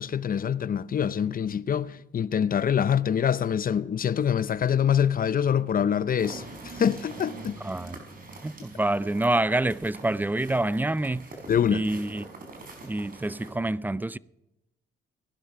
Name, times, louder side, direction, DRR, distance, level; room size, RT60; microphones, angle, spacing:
voice 1, 0.0-7.6 11.5-11.9, left 8 dB, 45° left, 0.6 m, -25 dB
sound 1, 6.2-13.5, right 3 dB, 45° right, 5.0 m, -44 dB
voice 2, 7.6-8.0 8.4-11.3 11.7-12.3 12.8-14.2, right 2 dB, 10° right, 0.4 m, -27 dB
18.0 x 11.5 x 5.9 m
cardioid pair, 75°, 20 cm